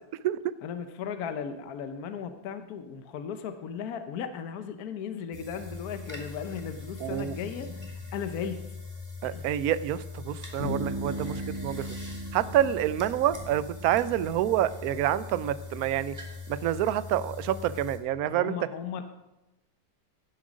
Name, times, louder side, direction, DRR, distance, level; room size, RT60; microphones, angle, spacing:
voice 1, 0.6-7.9 8.1-8.7 9.2-9.4 18.3-19.0, left 7 dB, 65° left, 8 dB, 1.2 m, -36 dB
sound 1, 5.3-18.0, left 4 dB, 10° right, 1.9 m, -41 dB
voice 2, 7.0-7.4 9.2-11.9 12.3-16.2 16.5-18.5, right 11 dB, 70° right, 15 dB, 1.0 m, -27 dB
Bass guitar, 10.6-14.3, right 1 dB, 40° left, 3.1 m, -37 dB
16.5 x 7.5 x 5.1 m, 0.97 s
omnidirectional pair, 1.8 m